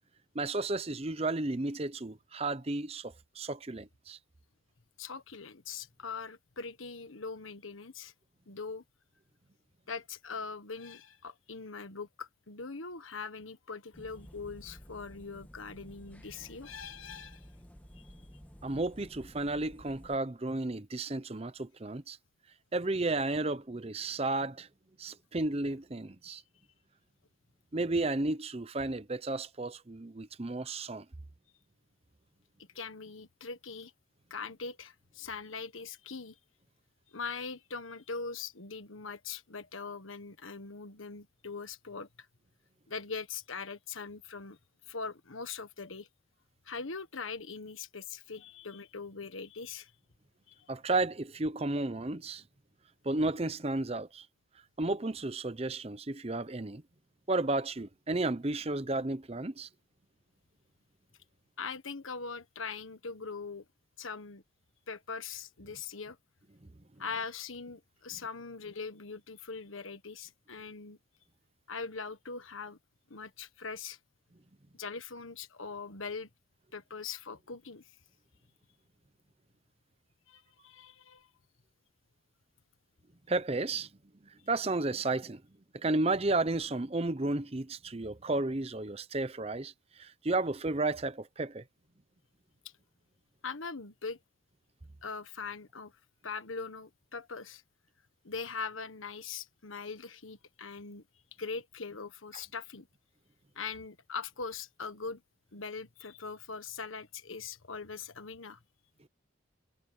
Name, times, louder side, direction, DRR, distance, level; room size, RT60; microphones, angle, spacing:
voice 1, 0.3-4.2 18.6-22.2 22.7-24.7 25.0-26.4 27.7-31.0 50.7-52.4 53.0-54.2 54.8-56.8 57.3-59.7 83.3-83.9 84.5-85.4 85.7-89.7 90.0-91.6, right 2 dB, 30° right, 0.8 m, -32 dB
voice 2, 5.0-8.1 8.5-8.8 9.9-17.5 17.9-18.3 26.3-26.4 32.7-33.9 34.3-36.4 37.1-42.1 42.9-44.6 44.9-46.1 46.6-49.9 50.5-50.7 61.6-63.6 64.0-64.4 64.9-66.2 67.0-71.0 71.7-72.8 73.1-74.0 74.7-76.3 76.7-77.9 80.3-81.3 93.4-94.2 95.0-95.9 96.2-97.6 98.2-101.0 101.4-102.9 103.5-105.2 105.5-108.6, left 5 dB, 90° left, 1.5 m, -41 dB
sound 1, 13.9-20.2, equal, 10° left, 1.6 m, -53 dB
head